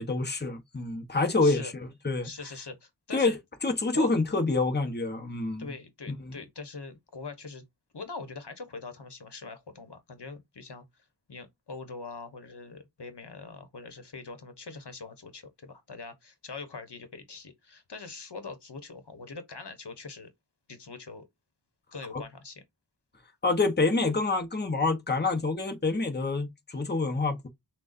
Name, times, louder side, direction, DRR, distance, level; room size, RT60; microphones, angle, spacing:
voice 1, 0.0-2.3 3.1-5.7 6.2-6.4 22.1-22.2 23.4-27.5, left 3 dB, 25° left, 1.0 m, -27 dB
voice 2, 1.4-1.7 2.2-3.4 3.9-4.1 5.6-7.7 7.9-20.3 20.7-21.2 21.9-22.6, left 4 dB, 70° left, 1.1 m, -43 dB
6.1 x 2.3 x 2.5 m
wide cardioid pair, 50°, 42 cm